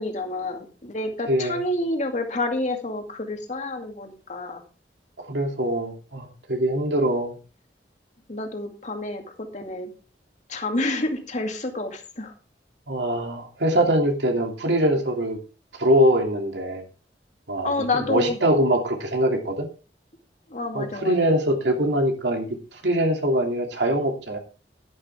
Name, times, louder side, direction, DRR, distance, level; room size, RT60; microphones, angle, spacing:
voice 1, 0.0-4.6 8.3-9.9 10.5-12.3 17.6-18.4 20.5-21.4, left 2 dB, 45° left, 4 dB, 2.3 m, -29 dB
voice 2, 1.3-1.6 5.2-7.4 12.9-15.4 15.8-16.8 17.5-19.7 20.7-22.5 22.7-24.4, right 1 dB, 85° right, 3 dB, 2.7 m, -23 dB
11.0 x 11.0 x 3.6 m, 0.34 s
head